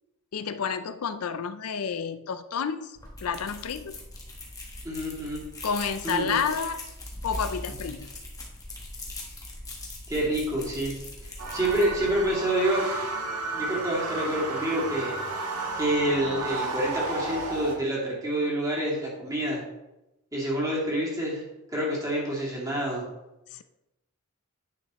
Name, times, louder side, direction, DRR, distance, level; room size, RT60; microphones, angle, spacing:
voice 1, 0.3-4.0 5.6-6.8 7.2-8.1 23.5-23.6, left 6 dB, 80° left, 12 dB, 0.5 m, -30 dB
sound 1, 3.0-12.3, left 2 dB, 15° left, 1.4 m, -41 dB
voice 2, 4.8-5.4 6.0-6.4 10.1-10.9 11.2-12.9 13.5-15.1 15.7-19.6 20.3-21.4 21.7-23.0, right 1 dB, 15° right, -6 dB, 2.4 m, -27 dB
Music on the Wind, 11.4-17.8, right 3 dB, 80° right, 1.6 m, -32 dB
9.7 x 6.3 x 3.1 m, 0.97 s
head